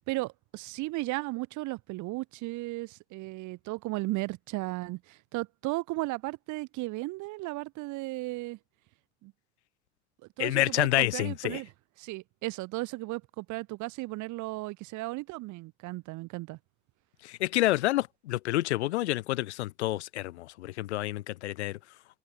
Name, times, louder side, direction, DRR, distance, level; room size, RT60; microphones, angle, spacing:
voice 1, 0.1-8.6 9.2-9.3 10.4-11.7 12.0-16.6, right 21 dB, 60° right, 1.6 m, -35 dB
voice 2, 10.4-11.6 17.2-21.8, left 16 dB, 80° left, 0.6 m, -28 dB
figure-of-eight pair, 55°, 33 cm